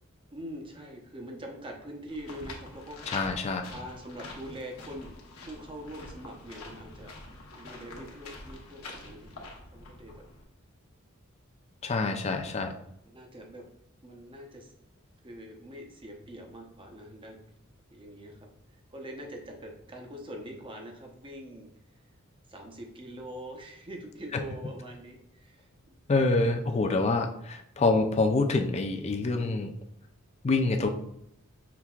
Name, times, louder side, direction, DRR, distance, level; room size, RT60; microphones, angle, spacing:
voice 1, 0.3-3.0 3.7-5.2 5.5-7.1 7.6-9.4 9.7-10.2 13.0-13.6 14.0-14.7 15.2-17.4 17.9-18.5 18.9-21.7 22.5-25.9, equal, 25° right, 2 dB, 0.7 m, -43 dB
sound 1, 2.1-10.4, left 2 dB, 80° left, 0.9 m, -45 dB
voice 2, 3.1-3.7 11.8-12.7 26.1-29.7 30.4-30.9, left 3 dB, 30° left, 5 dB, 0.4 m, -26 dB
5.9 x 3.4 x 2.3 m, 0.76 s
head